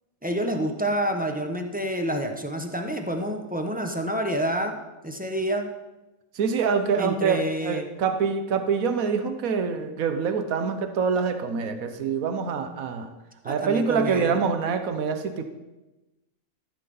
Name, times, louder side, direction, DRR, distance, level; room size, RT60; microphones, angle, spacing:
voice 1, 0.2-4.8 5.0-5.7 7.0-7.9 13.4-14.3, right 1 dB, 5° right, 4 dB, 0.9 m, -28 dB
voice 2, 6.3-13.1 13.4-15.4, right 5 dB, 85° right, 8 dB, 1.3 m, -25 dB
13.5 x 6.6 x 5.4 m, 1.0 s
omnidirectional pair, 1.4 m